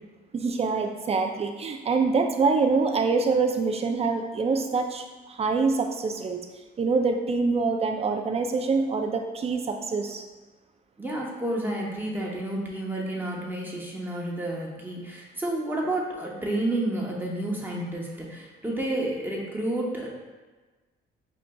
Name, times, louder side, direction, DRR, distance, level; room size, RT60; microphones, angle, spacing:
voice 1, 0.3-6.4 6.8-10.2, right 4 dB, 30° right, 5 dB, 0.4 m, -25 dB
voice 2, 11.0-20.1, right 1 dB, 10° right, -3 dB, 0.8 m, -30 dB
5.8 x 2.5 x 2.2 m, 1.3 s
cardioid pair, 90°, 20 cm